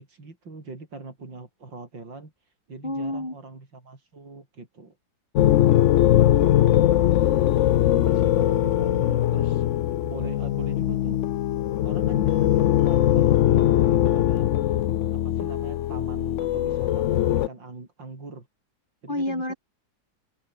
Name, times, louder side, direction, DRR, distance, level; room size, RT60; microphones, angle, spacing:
voice 1, 0.0-2.3 2.7-5.0 7.9-9.7 10.0-11.2 11.8-14.5 15.1-18.5 19.0-19.5, right 3 dB, 85° right, 5.7 m, -41 dB
voice 2, 2.8-3.4 6.3-6.8 19.1-19.6, left 1 dB, 25° left, 7.2 m, -30 dB
sound 1, 5.4-17.5, left 12 dB, 75° left, 0.6 m, -21 dB
omnidirectional pair, 2.0 m